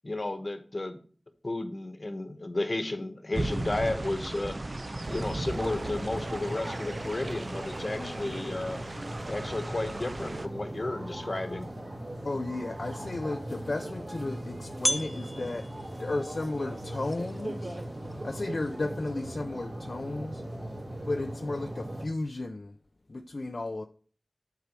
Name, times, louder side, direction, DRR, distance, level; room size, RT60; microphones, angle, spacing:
voice 1, 0.0-1.0 1.4-4.6 5.1-8.8 9.3-11.7, left 2 dB, 55° left, 9 dB, 1.1 m, -33 dB
sound 1, 3.3-10.5, right 2 dB, 55° right, 0.7 m, -37 dB
sound 2, 5.0-22.1, right 1 dB, 75° right, 3.3 m, -39 dB
voice 2, 8.0-8.4 12.2-15.7 16.0-17.8 18.1-20.4 21.0-22.7 23.1-23.8, left 2 dB, 70° left, 5 dB, 0.5 m, -34 dB
sound 3, 12.8-19.4, equal, 5° left, 0.4 m, -39 dB
8.2 x 4.6 x 6.1 m, 0.44 s
wide cardioid pair, 45°, 0 cm